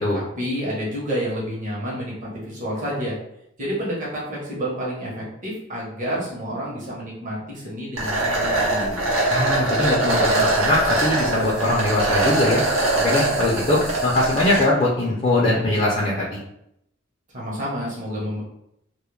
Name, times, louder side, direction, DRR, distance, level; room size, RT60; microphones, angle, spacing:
voice 1, 0.1-3.2 3.6-9.1 17.3-18.4, equal, 40° right, -5 dB, 0.9 m, -29 dB
sound 1, 8.0-14.6, right 2 dB, 80° right, 0.8 m, -22 dB
voice 2, 9.3-12.6 12.9-16.4, left 1 dB, 35° left, -4 dB, 0.4 m, -21 dB
2.3 x 2.1 x 3.0 m, 0.79 s
head